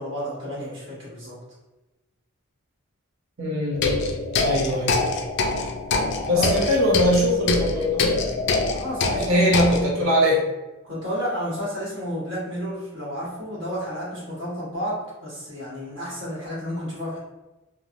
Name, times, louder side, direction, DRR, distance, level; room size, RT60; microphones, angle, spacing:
voice 1, 0.0-1.4 6.3-6.5 8.7-9.4 10.8-17.2, equal, 65° right, -7 dB, 1.3 m, -31 dB
voice 2, 3.4-3.9 4.4-5.0 6.2-8.1 9.3-10.4, equal, 80° right, -3 dB, 0.8 m, -21 dB
sound 1, 3.7-9.8, left 3 dB, 55° left, 0.3 m, -24 dB
3.1 x 2.0 x 2.5 m, 1.1 s
head